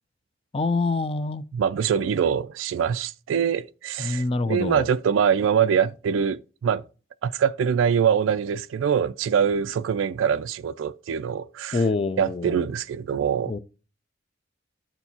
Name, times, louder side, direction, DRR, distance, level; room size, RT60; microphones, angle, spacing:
voice 1, 0.5-1.4 4.0-4.9 11.7-12.7 13.5-13.6, left 3 dB, 30° left, 0.4 m, -26 dB
voice 2, 1.5-6.8 7.2-11.9 12.2-13.5, right 7 dB, 90° right, 0.3 m, -24 dB
13.5 x 4.5 x 2.7 m
head